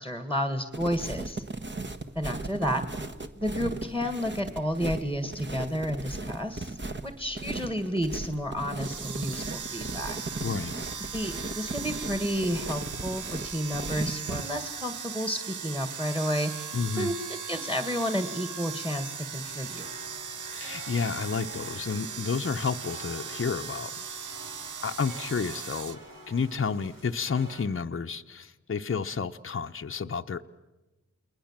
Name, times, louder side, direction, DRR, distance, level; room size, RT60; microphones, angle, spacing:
voice 1, 0.0-1.4 2.2-2.8 3.4-10.2 11.1-17.1 17.5-19.9, equal, 5° right, 8 dB, 1.9 m, -31 dB
sound 1, 0.7-14.4, right 2 dB, 35° right, 1.5 m, -37 dB
sound 2, 8.7-26.0, right 6 dB, 65° right, 0.9 m, -38 dB
voice 2, 10.4-10.7 16.7-17.1 20.5-24.0 24.8-26.0 26.3-30.4, left 5 dB, 40° left, 7 dB, 0.8 m, -31 dB
sound 3, 19.4-27.6, right 1 dB, 85° right, 4.6 m, -48 dB
29.5 x 20.5 x 7.4 m, 1.1 s
cardioid pair, 55°, 32 cm